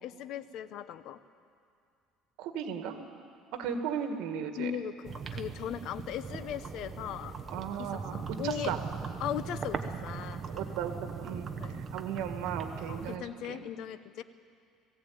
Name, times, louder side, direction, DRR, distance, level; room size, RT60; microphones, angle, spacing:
voice 1, 0.0-1.2 4.6-7.4 7.8-8.8 9.2-10.4 11.6-11.8 12.9-14.2, left 10 dB, 60° left, 13 dB, 0.8 m, -38 dB
voice 2, 2.4-3.0 3.6-4.7 7.5-8.8 10.5-11.5 11.9-13.6, right 8 dB, 75° right, 6 dB, 2.0 m, -36 dB
sound 1, 5.0-13.2, right 5 dB, 30° right, 1.0 m, -39 dB
19.0 x 16.0 x 8.8 m, 2.3 s
cardioid pair, 140°, 0 cm